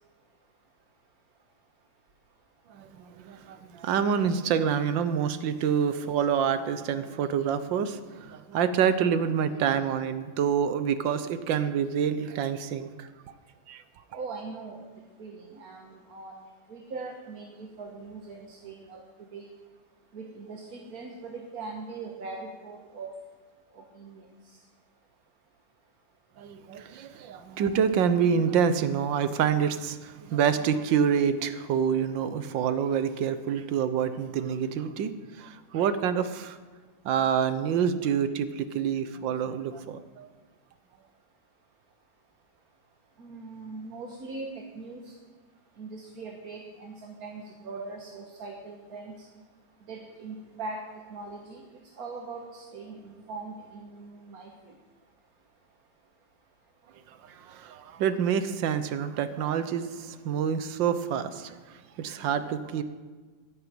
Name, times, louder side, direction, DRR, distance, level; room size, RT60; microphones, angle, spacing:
voice 1, 2.7-13.1 13.7-13.8 26.4-35.1 35.4-36.6 37.0-40.3 57.2-61.6 62.0-62.8, right 7 dB, 75° right, 12 dB, 1.6 m, -27 dB
voice 2, 14.1-14.8 15.2-16.3 16.7-19.5 20.1-23.1 23.7-24.3 43.2-45.1 45.8-49.3 49.9-51.6 52.0-54.5, right 3 dB, 55° right, 1 dB, 1.7 m, -41 dB
10.5 x 10.5 x 9.0 m, 1.4 s
omnidirectional pair, 2.1 m